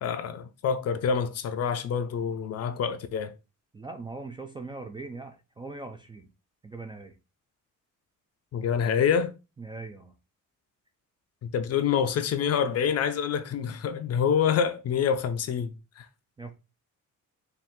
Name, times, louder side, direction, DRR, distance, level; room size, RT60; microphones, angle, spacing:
voice 1, 0.0-3.3 8.5-9.3 11.4-16.1, left 7 dB, 50° left, 0.5 m, -27 dB
voice 2, 3.7-6.3 6.6-7.2 9.6-10.1 16.4-16.5, right 3 dB, 15° right, 0.3 m, -40 dB
5.5 x 2.5 x 3.6 m
cardioid pair, 175°, 33 cm